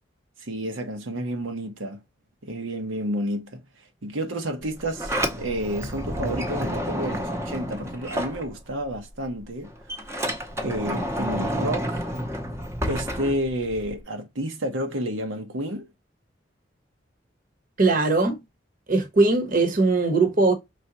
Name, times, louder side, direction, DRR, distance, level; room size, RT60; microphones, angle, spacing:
voice 1, 0.4-2.0 2.4-3.6 4.0-10.0 10.6-12.1 12.8-15.9, right 1 dB, 85° right, 1.0 m, -30 dB
Sliding door, 4.6-9.0 9.3-14.0, equal, 15° right, 0.7 m, -30 dB
voice 2, 17.8-18.4 18.9-20.5, right 3 dB, 45° right, 1.0 m, -20 dB
5.0 x 3.5 x 2.9 m
head